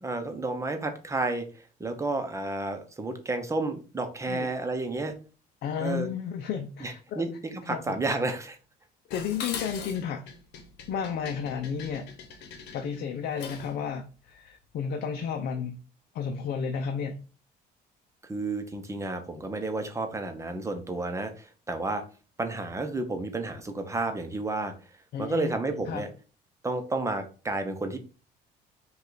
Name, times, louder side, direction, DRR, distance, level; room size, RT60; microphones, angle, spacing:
voice 1, 0.0-1.4 1.8-5.1 5.8-6.1 6.8-8.6 18.2-22.0 22.4-24.7 25.2-26.1 26.6-28.0, right 2 dB, 15° right, 7 dB, 0.8 m, -31 dB
voice 2, 5.6-7.2 7.7-8.0 9.1-10.2 10.9-12.1 12.7-15.8 16.1-17.2 25.1-25.5 25.9-26.0, left 7 dB, 65° left, 5 dB, 0.6 m, -32 dB
Dishes pots and pans, 9.1-13.8, left 6 dB, 85° left, 0.9 m, -41 dB
5.2 x 2.5 x 4.0 m, 0.35 s
cardioid pair, 110°, 17 cm